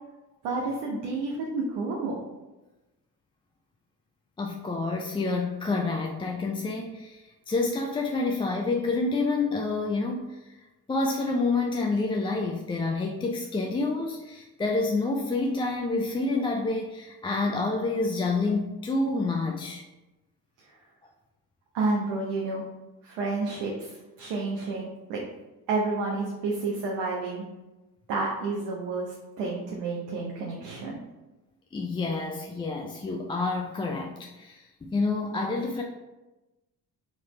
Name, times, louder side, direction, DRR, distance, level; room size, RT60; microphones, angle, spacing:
voice 1, 0.4-2.2 21.7-22.6 23.0-25.2 25.7-27.5 28.1-31.0, right 3 dB, 70° right, -2 dB, 0.8 m, -30 dB
voice 2, 4.4-10.5 10.9-19.8 31.7-35.8, left 3 dB, 15° left, 0 dB, 0.3 m, -28 dB
3.8 x 3.1 x 3.1 m, 1.1 s
hypercardioid pair, 45°, 45 cm